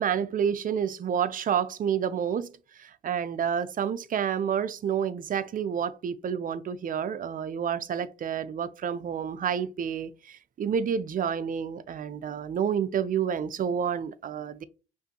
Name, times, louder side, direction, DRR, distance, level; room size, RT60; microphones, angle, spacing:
voice 1, 0.0-2.5 2.8-14.6, right 8 dB, 45° right, 0.4 m, -29 dB
5.4 x 2.6 x 2.8 m
cardioid pair, 90°, 20 cm